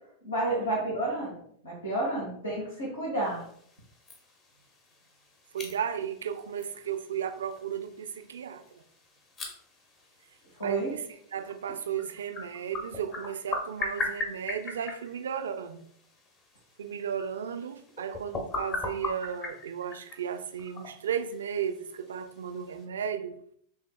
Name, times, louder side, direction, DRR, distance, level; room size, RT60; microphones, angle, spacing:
voice 1, 0.2-3.4 10.6-10.9, right 1 dB, 75° left, -7 dB, 1.5 m, -31 dB
sound 1, 3.2-22.8, left 2 dB, 30° left, 0.9 m, -41 dB
voice 2, 5.5-8.6 10.6-11.0 11.3-15.9 16.8-23.4, right 8 dB, 65° right, 8 dB, 0.4 m, -34 dB
5.5 x 3.4 x 2.2 m, 0.66 s
figure-of-eight pair, 90°, 0 cm